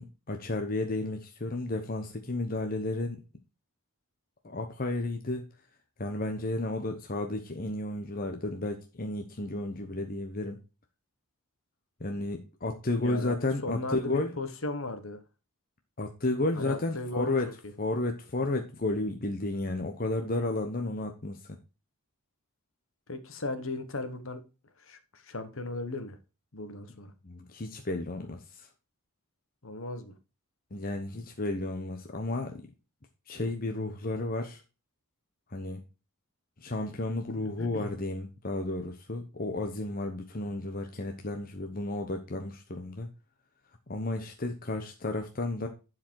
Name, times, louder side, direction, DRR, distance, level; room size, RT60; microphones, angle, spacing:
voice 1, 0.0-3.2 4.4-5.4 6.0-10.6 12.0-14.3 16.0-17.5 17.8-21.6 27.2-28.7 30.7-32.6 33.3-34.6 35.5-35.8 36.6-43.1 43.9-45.7, left 2 dB, 40° left, 4 dB, 1.0 m, -32 dB
voice 2, 12.9-13.3 13.6-15.2 16.5-17.3 23.1-24.4 24.9-26.2 26.5-27.1 29.6-30.1 37.3-37.9, left 2 dB, 60° left, 9 dB, 1.4 m, -36 dB
11.0 x 4.9 x 4.7 m, 0.31 s
head